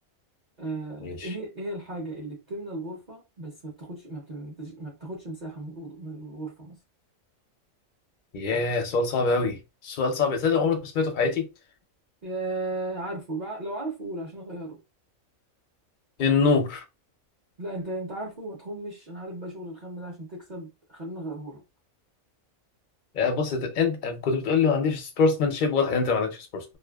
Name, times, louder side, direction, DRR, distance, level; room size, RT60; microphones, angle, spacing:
voice 1, 0.6-6.8 8.5-8.6 12.2-14.8 17.6-21.6, right 2 dB, 40° right, 0.7 m, -36 dB
voice 2, 8.3-11.5 16.2-16.8 23.1-26.6, left 4 dB, 50° left, 0.6 m, -24 dB
2.5 x 2.4 x 2.3 m
omnidirectional pair, 1.4 m